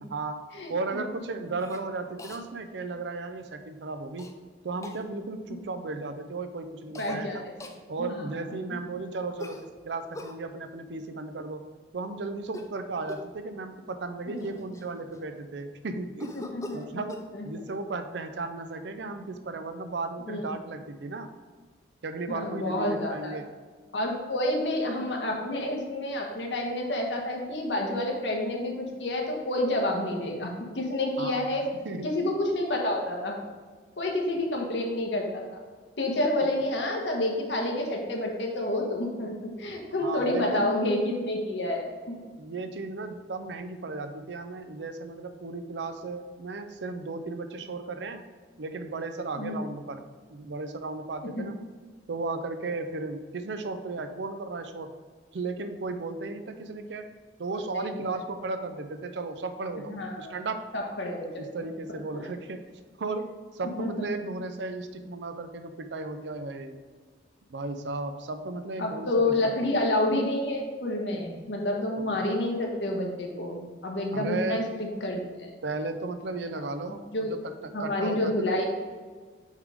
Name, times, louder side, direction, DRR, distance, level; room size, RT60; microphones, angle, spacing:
voice 1, 0.0-4.3 4.6-7.4 7.9-9.6 9.9-11.7 11.9-16.4 16.7-21.3 22.0-23.5 31.2-31.5 31.8-32.1 36.4-36.5 40.0-40.7 42.4-48.2 48.6-50.0 50.3-51.6 52.1-54.9 55.3-57.1 57.4-60.6 61.4-62.7 63.0-66.8 67.5-69.7 72.0-72.2 74.1-74.6 75.6-78.6, right 3 dB, 80° right, 8 dB, 0.5 m, -35 dB
voice 2, 0.5-1.0 7.0-7.4 8.0-8.3 8.7-8.8 14.3-14.6 16.4-16.8 17.3-17.6 20.3-20.5 22.3-23.4 23.9-31.6 32.0-33.3 34.0-35.6 36.0-42.2 49.4-49.5 57.5-58.1 59.9-60.3 60.7-61.3 61.6-61.7 62.1-62.2 63.6-64.1 68.8-75.5 76.9-77.3 77.7-78.6, left 1 dB, 90° left, 0 dB, 1.2 m, -29 dB
Cough, 1.6-1.8 2.2-2.4 4.2-4.3 4.8-5.0 6.9-7.2 7.6-7.8 9.4-10.4 12.4-12.8 13.1-13.4 14.0-14.1 14.4-15.4 16.2-17.3, left 2 dB, 20° left, 0.4 m, -42 dB
6.4 x 3.6 x 5.0 m, 1.5 s
head